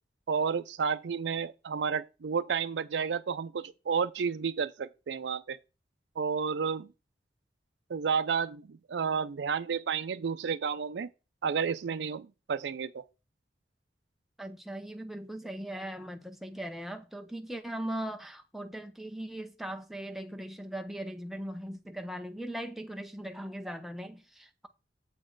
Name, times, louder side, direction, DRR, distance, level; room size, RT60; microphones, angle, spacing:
voice 1, 0.3-5.6 6.2-6.9 7.9-11.1 11.4-13.0, right 6 dB, 90° right, 0.4 m, -31 dB
voice 2, 14.4-24.7, right 1 dB, ahead, 0.6 m, -39 dB
7.6 x 4.3 x 4.6 m
head